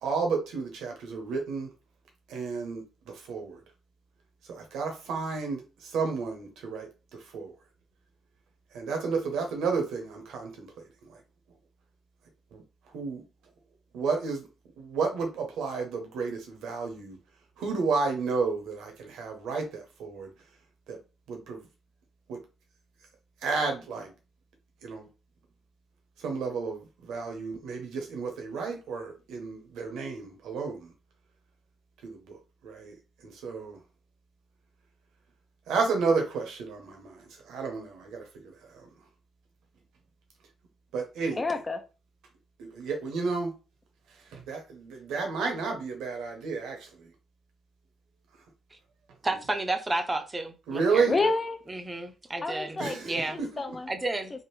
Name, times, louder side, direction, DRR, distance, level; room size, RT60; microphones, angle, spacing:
voice 1, 0.0-1.7 2.3-2.8 3.3-3.6 4.6-6.9 7.3-7.5 8.7-10.7 12.5-12.6 12.9-13.2 13.9-14.5 14.8-17.2 17.6-20.3 20.9-21.0 21.3-21.6 22.3-22.4 23.4-24.1 24.8-25.1 26.2-30.9 32.0-32.4 32.6-32.9 33.2-33.8 35.7-38.5 40.9-41.4 42.6-43.5 44.3-46.8 50.7-51.1 52.8-53.5, right 4 dB, 80° right, 0.8 m, -31 dB
voice 2, 41.3-41.8 51.1-51.6 52.4-53.0 53.3-53.9, left 3 dB, 30° left, 0.6 m, -29 dB
voice 3, 49.2-51.3 51.7-52.8 53.0-53.4 53.9-54.3, right 2 dB, 25° right, 0.6 m, -31 dB
3.5 x 2.0 x 3.1 m
hypercardioid pair, 50°, 0 cm